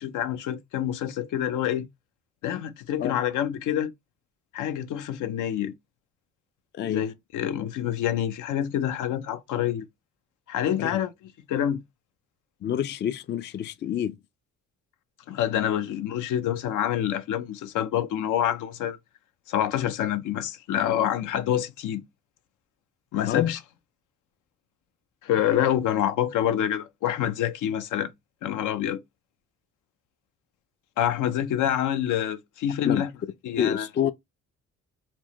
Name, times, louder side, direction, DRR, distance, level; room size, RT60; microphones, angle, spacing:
voice 1, 0.0-1.8 2.4-3.9 4.5-5.7 6.8-9.8 10.5-11.1 11.5-11.8 15.3-19.0 19.5-22.0 23.1-23.6 25.2-28.1 28.4-29.0 31.0-33.1 33.4-33.9, left 10 dB, 80° left, 0.6 m, -27 dB
voice 2, 6.7-7.1 10.8-11.0 12.6-14.2 23.3-23.5 32.8-33.1 33.6-34.1, left 10 dB, 40° left, 0.4 m, -27 dB
4.4 x 2.1 x 2.9 m
cardioid pair, 90°, 30 cm